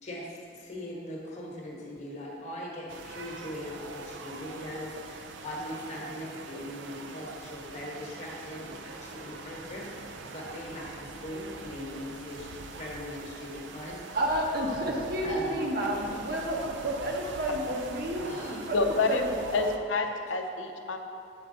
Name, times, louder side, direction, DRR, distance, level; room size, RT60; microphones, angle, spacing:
voice 1, 0.0-14.0 15.2-15.6 18.2-18.6, left 1 dB, 40° left, -3 dB, 1.1 m, -40 dB
sound 1, 2.9-19.8, right 3 dB, 75° right, 0.4 m, -43 dB
voice 2, 14.1-19.7, right 1 dB, 55° right, -1 dB, 1.0 m, -31 dB
voice 3, 18.7-19.2 19.5-21.0, left 3 dB, 85° left, 5 dB, 0.6 m, -28 dB
8.1 x 4.6 x 3.8 m, 2.5 s
head